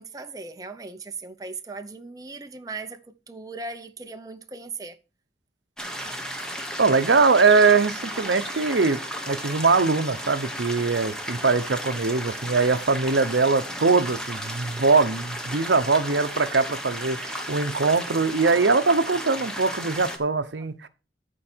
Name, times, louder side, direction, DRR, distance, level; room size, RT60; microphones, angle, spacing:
voice 1, 0.0-3.0 3.3-5.0, right 3 dB, 20° right, 0.7 m, -38 dB
sound 1, 5.8-20.2, equal, 5° left, 1.2 m, -34 dB
voice 2, 6.8-9.0 9.3-20.9, right 4 dB, 90° right, 0.8 m, -22 dB
13.5 x 4.6 x 4.5 m
head